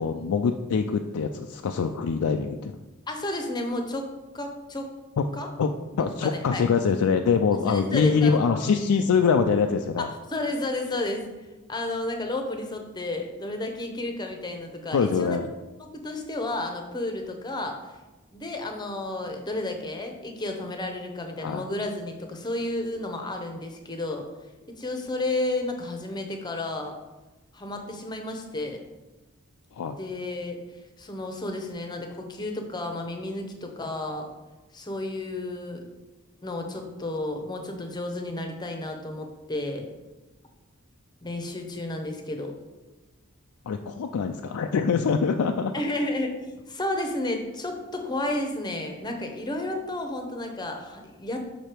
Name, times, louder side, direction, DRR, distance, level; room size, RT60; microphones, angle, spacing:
voice 1, 0.0-2.8 5.6-5.7 6.0-10.1 14.9-15.5 21.4-21.6 29.8-30.0 43.7-45.7, left 5 dB, 75° left, 5 dB, 0.4 m, -24 dB
voice 2, 3.1-4.1 4.3-4.9 5.3-5.5 5.9-6.6 7.6-8.7 10.0-11.3 11.7-15.4 15.8-17.8 18.3-24.2 24.8-27.0 27.5-28.8 30.0-30.6 31.0-34.3 34.7-35.8 36.4-39.9 41.2-42.5 45.7-46.3 46.7-51.4, left 2 dB, 20° left, 3 dB, 0.7 m, -32 dB
5.5 x 5.0 x 4.4 m, 1.1 s
head